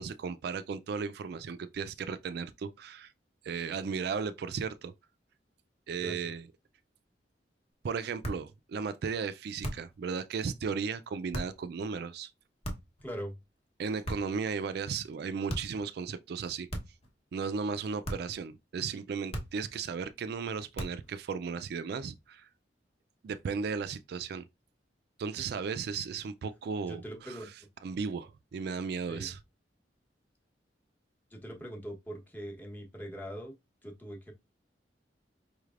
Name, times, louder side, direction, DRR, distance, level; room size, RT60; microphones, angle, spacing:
voice 1, 0.0-3.1 3.4-4.9 5.9-6.4 7.8-12.3 13.8-16.7 17.3-22.5 23.2-24.4 25.2-27.5 27.8-29.4, right 5 dB, 60° right, 0.3 m, -35 dB
sound 1, 8.2-8.5 9.6-10.0 11.3-11.6 12.6-13.0 14.0-14.4 15.5-15.8 16.7-17.1 18.0-18.4 19.3-19.7 20.7-21.1, equal, 35° left, 1.0 m, -38 dB
voice 2, 13.0-13.3 26.8-27.5 29.1-29.3 31.3-33.5 33.8-34.3, equal, 10° left, 1.0 m, -41 dB
4.9 x 3.2 x 2.4 m
head